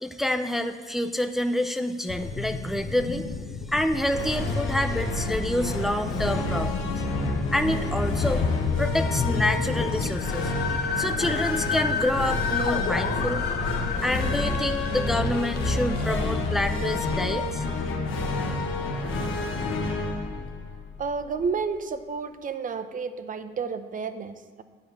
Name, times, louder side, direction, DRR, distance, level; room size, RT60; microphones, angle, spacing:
voice 1, 0.0-3.4 3.7-7.0 7.5-8.5 8.8-10.6 11.0-13.4 14.0-17.7, left 1 dB, ahead, 8 dB, 0.4 m, -28 dB
sound 1, 2.1-17.5, left 5 dB, 55° left, 0.8 m, -31 dB
sound 2, 4.1-21.5, left 2 dB, 85° left, 1.2 m, -29 dB
voice 2, 21.0-24.6, right 5 dB, 45° right, 10 dB, 0.6 m, -31 dB
8.7 x 4.9 x 7.0 m, 1.4 s
cardioid pair, 90°, 20 cm